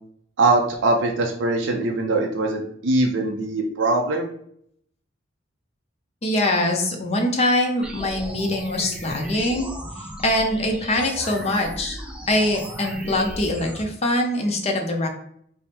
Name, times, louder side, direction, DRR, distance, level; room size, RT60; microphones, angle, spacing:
voice 1, 0.4-4.3, right 2 dB, 80° right, 2 dB, 0.5 m, -22 dB
voice 2, 6.2-9.7 10.0-12.0 12.3-15.1, left 1 dB, 35° left, 2 dB, 0.6 m, -23 dB
sound 1, 7.8-13.8, equal, 5° right, 0.4 m, -36 dB
3.5 x 2.1 x 4.1 m, 0.67 s
head